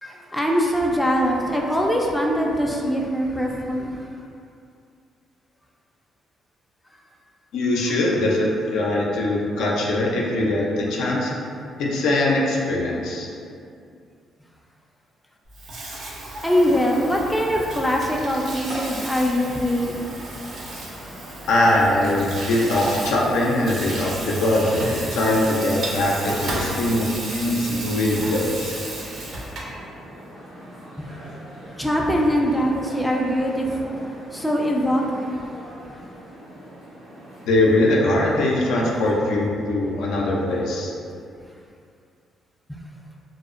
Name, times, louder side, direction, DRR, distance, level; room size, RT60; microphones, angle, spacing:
voice 1, 0.0-4.1 16.4-20.1 31.0-31.2 31.8-35.5 42.7-42.8, equal, 5° left, -1 dB, 0.3 m, -23 dB
voice 2, 7.5-11.3 11.8-13.3 21.5-28.8 37.4-40.9, left 1 dB, 85° left, -3 dB, 0.4 m, -21 dB
Water tap faucet / Sink (filling or washing), 15.5-29.8, right 1 dB, 65° right, 0.5 m, -34 dB
sound 1, 19.4-39.1, equal, 85° right, 1.2 m, -41 dB
2.5 x 2.1 x 2.4 m, 2.4 s
cardioid pair, 90°, 0 cm